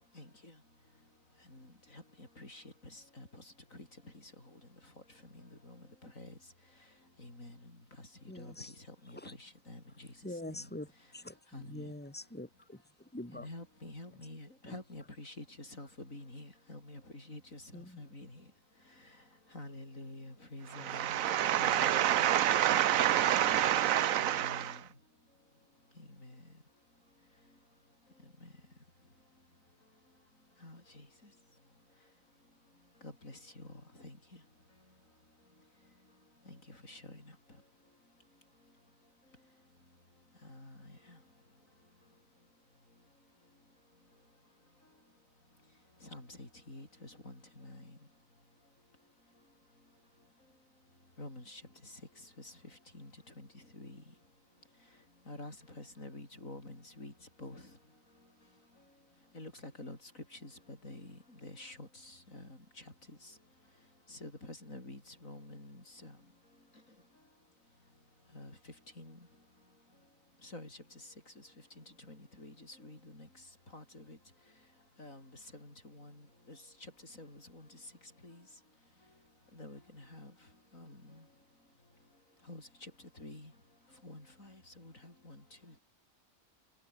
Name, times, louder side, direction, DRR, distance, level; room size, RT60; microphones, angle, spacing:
voice 1, 0.2-0.5 1.5-1.7 1.9-2.0 2.4-2.6 2.9-3.4 3.7-3.9 5.3-5.7 6.0-6.3 7.2-7.5 8.4-8.5 9.1-10.1 11.5-11.9 13.3-18.4 19.5-21.2 21.6-22.1 24.2-24.8 26.0-26.3 28.4-28.5 30.6-31.0 33.0-33.7 34.0-34.2 36.7-37.2 40.5-40.9 46.1-47.8 51.2-51.6 52.4-52.5 52.9-53.1 53.4-53.5 53.7-54.0 55.3-57.1 57.4-57.6 59.3-60.0 60.3-62.5 64.1-66.2 68.3-68.5 69.0-69.2 70.4-70.8 71.8-73.3 73.7-74.2 75.0-75.2 75.6-76.1 76.5-76.6 77.2-77.8 78.2-78.4 79.5-80.3 80.7-81.2 82.5-82.9 83.2-83.5 84.0-85.4 85.7-85.8, left 1 dB, 70° left, 8.1 m, -48 dB
voice 2, 8.3-8.7 9.1-9.3 10.2-13.5 14.7-14.8 17.7-18.0, left 1 dB, 5° left, 3.0 m, -45 dB
voice 3, 20.7-24.8, right 11 dB, 75° right, 1.1 m, -28 dB
omnidirectional pair, 1.4 m